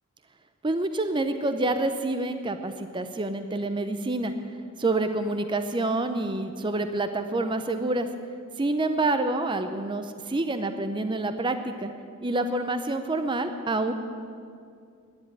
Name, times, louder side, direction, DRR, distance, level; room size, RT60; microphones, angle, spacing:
voice 1, 0.6-4.3 4.8-8.1 8.6-11.9 12.2-13.9, right 2 dB, 20° right, 9 dB, 0.6 m, -27 dB
10.5 x 9.9 x 9.8 m, 2.3 s
head